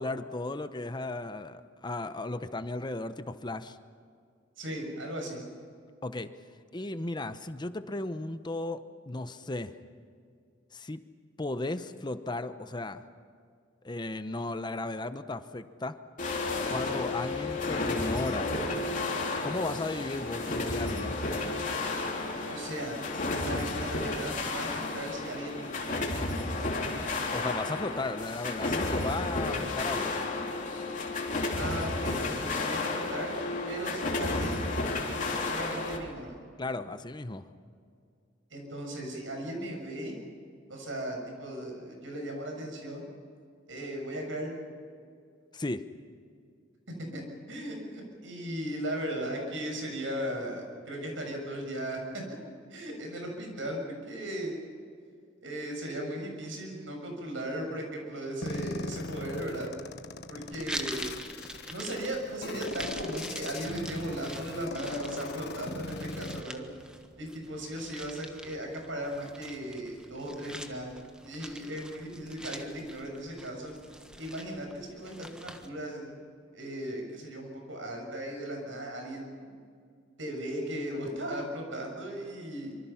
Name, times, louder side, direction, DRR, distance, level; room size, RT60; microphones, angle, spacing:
voice 1, 0.0-3.8 6.0-6.3 6.7-8.8 9.1-9.7 10.7-11.0 11.4-13.0 13.8-16.0 16.7-18.5 19.4-21.2 27.0-30.2 36.6-37.5 45.5-45.8, left 2 dB, 25° left, 11 dB, 0.8 m, -35 dB
voice 2, 4.6-5.4 22.5-24.7 24.9-26.1 31.5-33.4 33.7-34.9 35.5-36.3 38.5-40.1 40.7-43.1 43.7-44.5 47.1-47.2 47.5-52.0 52.7-54.6 55.4-59.7 60.3-61.0 61.7-66.6 67.2-70.9 71.2-73.7 74.2-76.1 76.5-79.5 80.2-82.8, right 1 dB, 80° right, 2 dB, 7.1 m, -37 dB
sound 1, 16.2-36.0, left 2 dB, 45° left, 3.5 m, -32 dB
sound 2, 58.4-66.4, left 3 dB, 60° left, 1.3 m, -40 dB
sound 3, 60.5-75.7, equal, 5° right, 1.4 m, -45 dB
25.5 x 25.0 x 5.8 m, 2.2 s
head